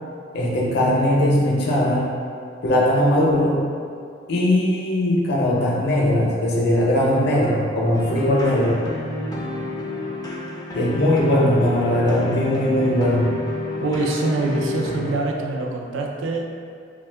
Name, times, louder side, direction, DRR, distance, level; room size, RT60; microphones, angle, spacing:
voice 1, 0.3-2.1 2.6-3.6 4.3-8.8 10.7-13.3, left 1 dB, 60° left, -4 dB, 0.6 m, -19 dB
sound 1, 7.9-15.1, left 2 dB, 20° left, 0.3 m, -30 dB
voice 2, 13.8-16.4, right 3 dB, 90° right, 0 dB, 0.4 m, -24 dB
2.7 x 2.3 x 3.3 m, 2.3 s
head